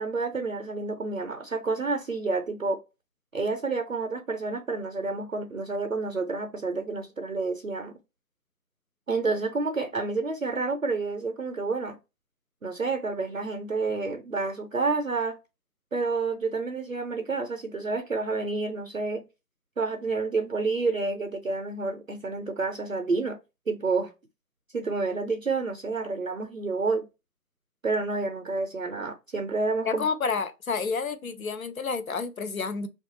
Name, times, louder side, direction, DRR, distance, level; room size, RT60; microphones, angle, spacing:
voice 1, 0.0-2.8 3.3-7.9 9.1-12.0 12.6-15.4 15.9-19.2 19.8-23.4 23.7-24.1 24.7-27.1 27.8-30.0, right 3 dB, 55° right, 0.5 m, -29 dB
voice 2, 29.9-32.9, left 5 dB, 60° left, 0.5 m, -29 dB
3.0 x 2.4 x 2.7 m
figure-of-eight pair, 175°, 49 cm